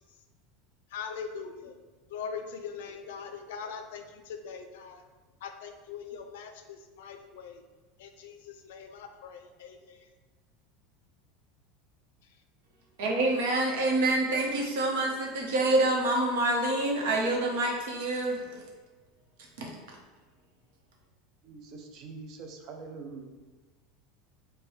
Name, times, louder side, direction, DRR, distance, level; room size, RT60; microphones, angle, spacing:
voice 1, 0.9-1.8 2.1-5.0 5.4-7.6 8.0-10.1, left 6 dB, 85° left, 6 dB, 0.4 m, -41 dB
voice 2, 13.0-18.4 19.6-19.7, right 2 dB, 80° right, -1 dB, 0.9 m, -27 dB
voice 3, 21.4-23.3, right 4 dB, 35° right, 3 dB, 0.4 m, -44 dB
4.6 x 2.2 x 3.2 m, 1.2 s
supercardioid pair, 175°, 0 cm